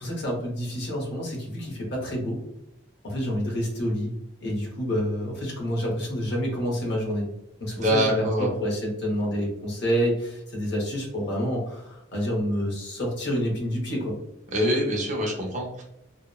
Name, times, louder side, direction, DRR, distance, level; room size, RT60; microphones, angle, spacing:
voice 1, 0.0-2.4 3.0-4.1 4.4-7.3 7.6-14.2, equal, 55° left, -1 dB, 0.8 m, -28 dB
voice 2, 7.8-8.5 14.5-15.8, equal, 35° right, -1 dB, 0.5 m, -25 dB
2.7 x 2.0 x 2.2 m, 0.84 s
head